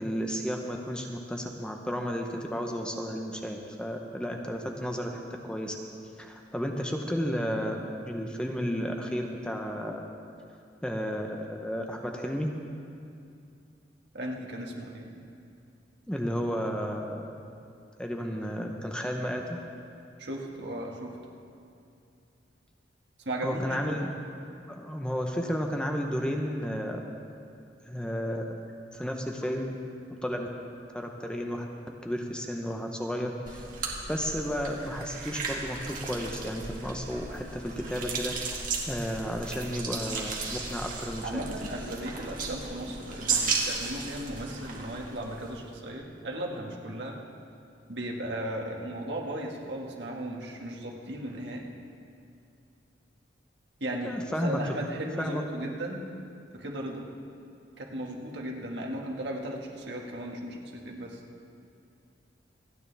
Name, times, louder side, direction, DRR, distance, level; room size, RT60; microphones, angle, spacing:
voice 1, 0.0-5.8 6.2-10.1 10.8-12.5 16.1-17.4 18.0-19.6 23.4-24.1 24.7-27.0 27.9-28.6 28.9-29.8 30.2-30.5 30.9-31.7 32.0-33.7 34.1-38.5 38.9-41.4 54.0-54.8 55.2-55.4, equal, 5° left, 2 dB, 0.8 m, -32 dB
voice 2, 14.1-15.1 20.2-21.2 23.3-24.0 41.2-47.2 47.9-51.6 53.8-54.1 54.4-56.0 56.5-57.0 57.8-61.2, right 1 dB, 65° right, 0 dB, 1.7 m, -36 dB
sound 1, 33.5-45.7, right 4 dB, 50° right, 1.8 m, -35 dB
27.5 x 9.5 x 3.4 m, 2.5 s
head